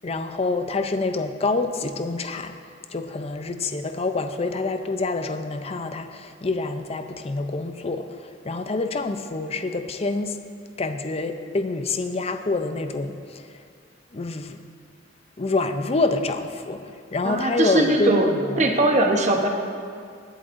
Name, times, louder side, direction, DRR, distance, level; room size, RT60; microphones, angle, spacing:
voice 1, 0.0-2.5 2.9-8.1 8.4-10.4 10.8-13.4 14.1-14.6 15.4-16.8 17.1-18.7, left 3 dB, 30° left, 8 dB, 0.5 m, -26 dB
voice 2, 17.2-18.3 18.6-19.5, right 1 dB, 40° right, 3 dB, 1.0 m, -20 dB
22.0 x 8.1 x 2.6 m, 2.3 s
head